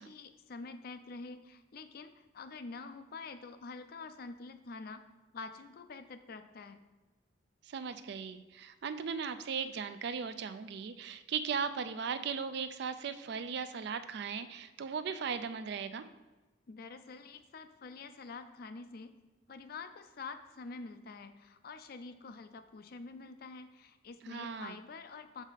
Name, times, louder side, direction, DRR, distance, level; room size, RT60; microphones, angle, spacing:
voice 1, 0.0-5.0 5.3-6.8 16.7-19.1 19.5-25.4, left 4 dB, 50° left, 10 dB, 0.4 m, -47 dB
voice 2, 7.6-16.0 24.2-24.8, right 6 dB, 60° right, 11 dB, 0.4 m, -37 dB
6.3 x 4.9 x 3.9 m, 1.2 s
head